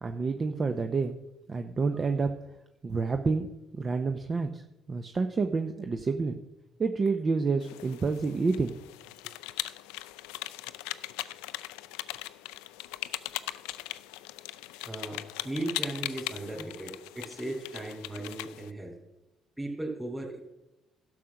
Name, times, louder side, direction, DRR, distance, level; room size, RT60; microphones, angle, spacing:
voice 1, 0.0-1.2 1.5-2.3 2.8-4.6 4.9-6.4 6.8-8.8, right 4 dB, 40° right, 7 dB, 0.7 m, -29 dB
Typewriter's Key, 7.6-18.7, left 17 dB, 80° left, 0.3 m, -39 dB
voice 2, 14.8-18.9 19.6-20.4, right 2 dB, 10° right, -3 dB, 3.1 m, -37 dB
12.0 x 6.5 x 5.9 m, 0.95 s
hypercardioid pair, 55°, 0 cm